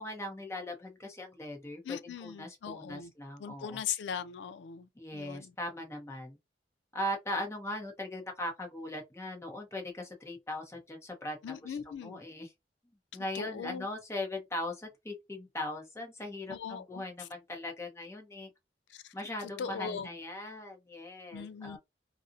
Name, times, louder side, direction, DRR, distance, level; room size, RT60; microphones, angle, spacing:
voice 1, 0.0-3.8 5.0-6.4 6.9-12.5 13.1-18.5 19.1-21.8, left 1 dB, 15° left, 0.6 m, -39 dB
voice 2, 1.8-3.1 3.4-5.5 11.4-12.2 13.3-13.9 16.5-17.3 18.9-19.1 19.6-20.1 21.3-21.8, left 7 dB, 85° left, 0.4 m, -39 dB
2.5 x 2.0 x 2.5 m
head